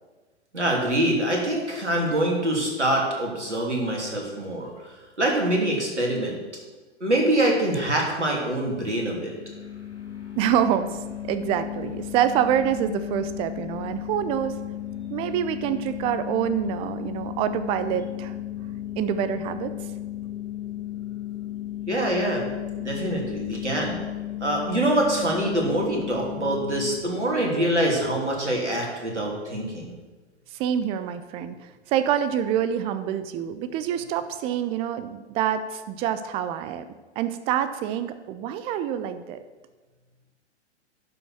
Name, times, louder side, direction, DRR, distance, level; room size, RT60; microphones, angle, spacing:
voice 1, 0.5-4.7 5.2-6.4 7.0-9.3 21.9-22.5 22.8-24.0 24.4-30.0, right 1 dB, 80° right, -1 dB, 3.1 m, -25 dB
sound 1, 9.2-27.0, left 12 dB, 90° left, 1.5 m, -34 dB
voice 2, 10.4-11.0 11.2-14.6 15.1-18.3 19.0-19.8 30.6-31.5 31.9-36.8 37.2-39.4, right 10 dB, 15° right, 11 dB, 0.4 m, -26 dB
10.5 x 6.1 x 6.2 m, 1.3 s
figure-of-eight pair, 105°, 34 cm